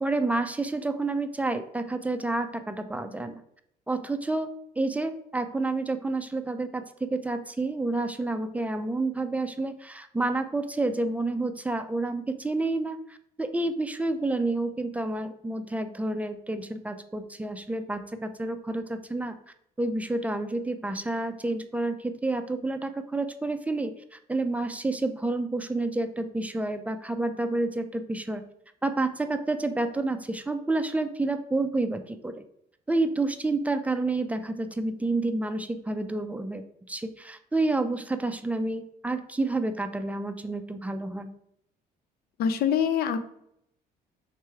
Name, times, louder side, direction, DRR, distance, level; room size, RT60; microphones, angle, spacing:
voice 1, 0.0-3.4 3.9-4.5 4.8-19.3 19.8-28.4 28.8-32.4 32.9-41.3, right 2 dB, 10° right, 8 dB, 0.4 m, -29 dB
voice 2, 42.4-43.3, left 8 dB, 65° left, 10 dB, 0.5 m, -25 dB
3.3 x 3.0 x 4.6 m, 0.72 s
cardioid pair, 110°, 17 cm